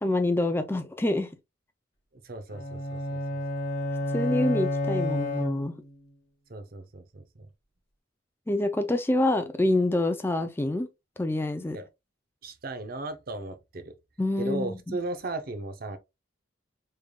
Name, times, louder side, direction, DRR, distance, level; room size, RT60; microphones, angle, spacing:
voice 1, 0.0-1.3 4.1-5.7 8.5-10.9 11.2-11.8 14.2-15.0, left 1 dB, 10° left, 0.4 m, -26 dB
voice 2, 2.2-3.4 6.5-7.5 11.7-11.9 12.4-13.9 14.4-16.0, right 2 dB, 50° right, 0.7 m, -36 dB
sound 1, 2.5-6.0, left 1 dB, 30° left, 1.6 m, -30 dB
5.1 x 3.3 x 2.3 m
head